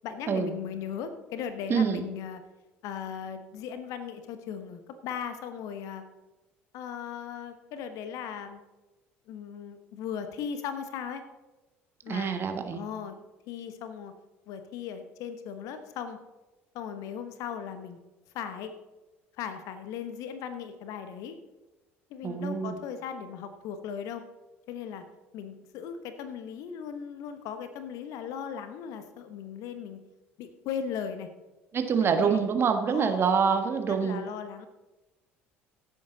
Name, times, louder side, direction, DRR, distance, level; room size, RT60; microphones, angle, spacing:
voice 1, 0.0-2.4 2.8-6.1 6.7-8.6 9.3-11.2 12.0-12.4 12.7-13.2 13.5-14.1 14.5-16.2 16.7-18.0 18.3-18.7 19.4-21.4 22.1-24.2 24.7-25.0 25.3-30.0 30.4-31.3 32.0-32.4 32.9-33.2 33.9-34.7, left 8 dB, 55° left, 9 dB, 1.1 m, -37 dB
voice 2, 1.7-2.0 12.1-12.8 22.2-22.8 31.7-34.2, right 6 dB, 35° right, 7 dB, 1.5 m, -26 dB
16.0 x 8.3 x 4.0 m, 1.1 s
figure-of-eight pair, 60°, 7 cm